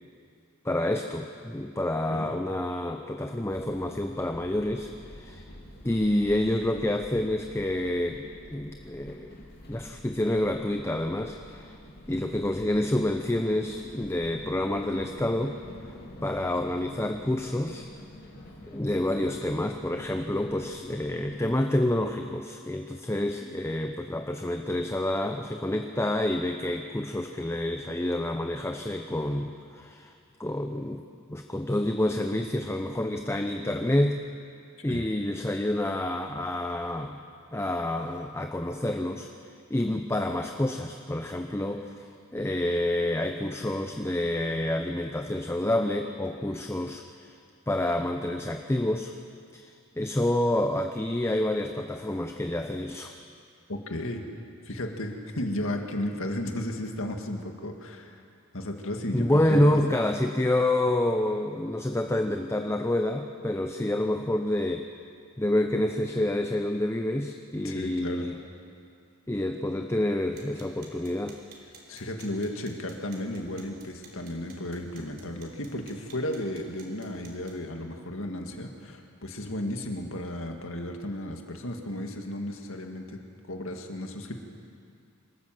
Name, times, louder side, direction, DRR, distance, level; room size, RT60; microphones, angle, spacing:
voice 1, 0.6-5.4 5.8-9.3 9.7-11.7 12.1-15.6 16.2-17.9 18.7-30.1 30.4-34.3 34.8-37.2 37.5-39.3 39.7-47.3 47.7-49.1 49.5-53.1 59.1-64.9 65.4-68.4 69.3-71.4, left 1 dB, 10° left, 5 dB, 0.7 m, -28 dB
sound 1, 3.5-21.5, left 1 dB, 50° left, 2.8 m, -47 dB
voice 2, 53.7-54.2 54.7-58.2 58.5-59.8 67.6-68.3 71.9-83.2 83.5-84.3, left 1 dB, 70° left, 3 dB, 2.1 m, -34 dB
sound 2, 70.2-77.6, right 3 dB, 45° right, 3.5 m, -54 dB
26.0 x 13.0 x 7.6 m, 2.4 s
head